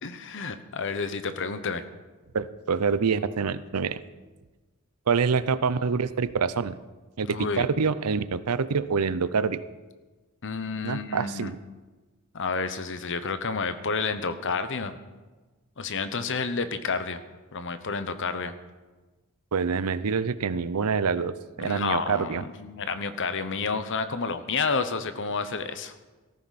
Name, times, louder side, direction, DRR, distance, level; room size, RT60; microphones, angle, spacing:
voice 1, 0.0-1.8 7.3-7.7 10.4-11.5 12.3-15.0 15.8-17.2 17.5-18.5 21.6-25.9, left 4 dB, 55° left, 11 dB, 1.0 m, -30 dB
voice 2, 2.3-4.0 5.1-6.8 7.2-9.6 10.8-11.6 19.5-22.4, right 5 dB, 85° right, 15 dB, 0.6 m, -26 dB
17.5 x 14.5 x 4.2 m, 1.2 s
head